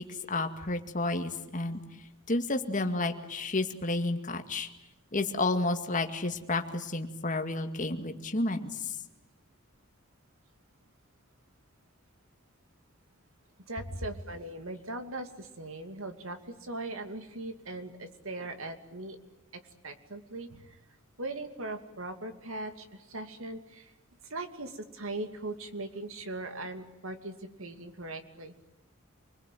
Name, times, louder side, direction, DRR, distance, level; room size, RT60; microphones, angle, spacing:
voice 1, 0.0-1.8 2.3-4.7 5.1-8.7, left 2 dB, 35° left, 6 dB, 2.2 m, -31 dB
voice 2, 13.7-19.2 19.5-20.8 21.2-23.9 24.3-28.5, right 2 dB, 75° right, 7 dB, 2.6 m, -40 dB
28.5 x 21.5 x 9.4 m, 0.92 s
head